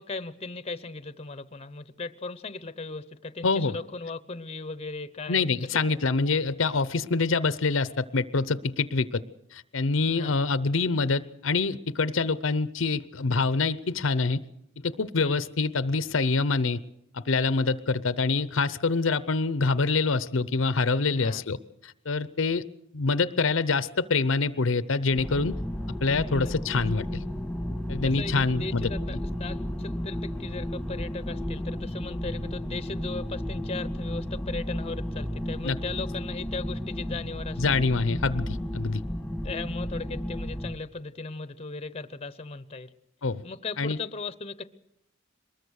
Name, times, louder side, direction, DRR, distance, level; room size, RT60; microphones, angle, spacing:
voice 1, 0.0-6.0 10.1-10.3 15.2-15.4 21.1-21.4 26.3-26.5 28.0-37.8 39.4-42.9 43.4-44.6, left 3 dB, 30° left, 14 dB, 0.8 m, -37 dB
voice 2, 3.4-3.8 5.3-9.2 9.5-14.4 14.8-16.8 17.1-21.6 21.8-22.6 22.9-25.5 26.0-27.2 27.9-28.9 35.6-35.8 37.6-39.0 43.2-43.4 43.8-44.0, left 4 dB, 70° left, 15 dB, 0.8 m, -25 dB
sound 1, 25.1-40.8, equal, ahead, 1.5 m, -33 dB
23.0 x 20.5 x 6.5 m, 0.81 s
head